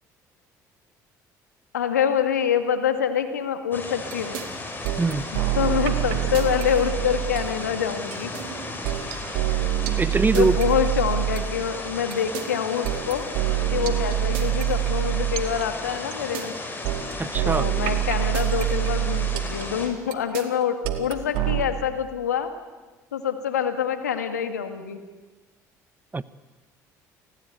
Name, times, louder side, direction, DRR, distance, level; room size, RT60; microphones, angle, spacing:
voice 1, 1.7-4.4 5.3-8.3 10.3-13.3 13.7-16.5 17.2-22.5 23.1-25.0, left 8 dB, 85° left, 8 dB, 2.0 m, -26 dB
sound 1, 3.7-19.9, left 2 dB, 20° left, 7.6 m, -35 dB
sound 2, 4.1-4.4 4.8-7.6 8.1-11.6 12.1-16.4 16.8-21.6, right 13 dB, 70° right, 2.4 m, -26 dB
voice 2, 10.0-10.6 17.2-17.7 26.1-26.2, right 3 dB, 20° right, 17 dB, 1.1 m, -22 dB
29.5 x 19.5 x 9.3 m, 1.2 s
hypercardioid pair, 60°, 9 cm